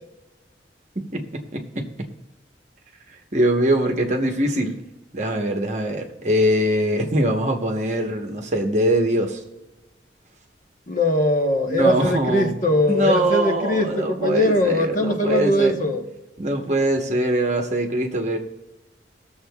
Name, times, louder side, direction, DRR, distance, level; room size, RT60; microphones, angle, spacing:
voice 1, 1.1-2.1 3.3-4.7 5.1-9.4 11.7-12.5 12.9-15.8 16.4-18.4, right 1 dB, 40° right, 3 dB, 1.0 m, -22 dB
voice 2, 10.9-16.0, left 1 dB, 45° left, 2 dB, 1.0 m, -21 dB
21.5 x 7.2 x 2.3 m, 1.0 s
head